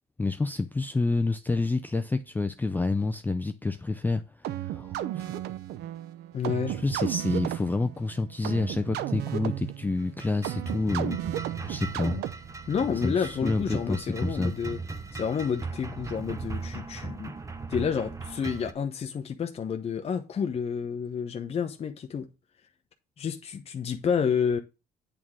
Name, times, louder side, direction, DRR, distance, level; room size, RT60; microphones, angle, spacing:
voice 1, 0.2-5.4 6.7-11.2 11.7-12.2 13.0-14.5, left 3 dB, 10° left, 0.4 m, -29 dB
sound 1, 4.4-12.7, right 12 dB, 75° right, 0.7 m, -34 dB
voice 2, 6.3-6.8 12.7-14.8 15.1-17.3 17.7-22.3 23.2-24.6, left 7 dB, 35° left, 0.8 m, -29 dB
sound 2, 10.0-18.7, right 4 dB, 20° right, 0.8 m, -38 dB
8.5 x 3.7 x 6.2 m
cardioid pair, 110°, 17 cm